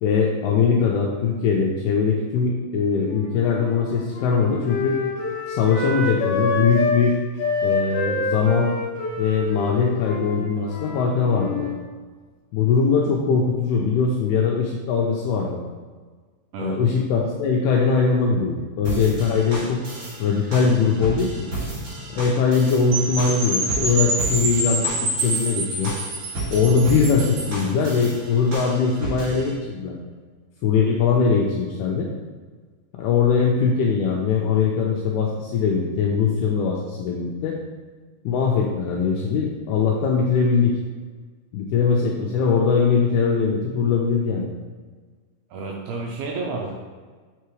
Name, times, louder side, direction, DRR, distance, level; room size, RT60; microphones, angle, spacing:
voice 1, 0.0-5.0 5.5-7.2 7.6-8.7 9.2-11.7 12.5-15.6 16.6-19.8 20.2-21.5 22.1-25.9 26.5-30.0 30.6-32.1 33.0-37.6 38.3-40.8 41.5-44.5, left 5 dB, 85° left, -1 dB, 2.3 m, -21 dB
Wind instrument woodwind instrument, 3.0-7.0 7.4-11.8, left 3 dB, 70° left, 2.1 m, -27 dB
sound 1, 18.8-29.5, right 2 dB, 40° right, 2.1 m, -33 dB
Percussion / Wind chime, 22.9-27.6, right 2 dB, 70° right, 3.7 m, -26 dB
voice 2, 45.5-46.7, right 3 dB, 85° right, -1 dB, 2.3 m, -30 dB
6.7 x 5.6 x 3.1 m, 1.5 s
omnidirectional pair, 5.1 m